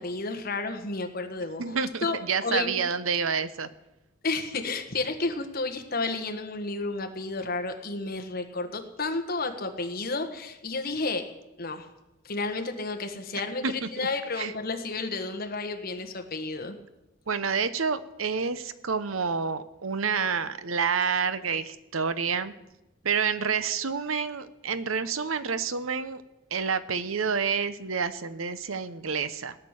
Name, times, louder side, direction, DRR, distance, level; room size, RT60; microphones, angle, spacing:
voice 1, 0.0-1.6 2.0-2.8 4.2-11.2 11.6-11.9 12.2-16.8, left 3 dB, 50° left, 6 dB, 1.6 m, -31 dB
voice 2, 1.6-3.7 13.6-14.1 14.4-14.5 17.3-22.5 23.0-26.2 26.5-29.6, right 5 dB, 85° right, 13 dB, 0.9 m, -28 dB
17.5 x 6.7 x 10.0 m, 0.97 s
head